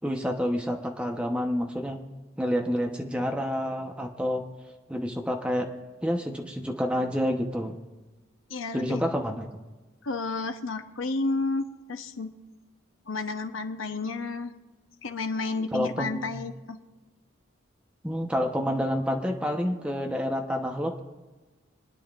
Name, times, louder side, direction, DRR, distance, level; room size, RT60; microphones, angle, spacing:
voice 1, 0.0-2.0 2.4-4.4 4.9-5.7 6.0-7.8 8.7-9.5 15.7-16.4 18.0-21.0, equal, 5° right, 2 dB, 0.9 m, -28 dB
voice 2, 8.5-9.0 10.0-12.3 13.1-14.5 15.0-16.8, left 3 dB, 80° left, 7 dB, 0.9 m, -31 dB
26.5 x 10.0 x 2.5 m, 1.2 s
head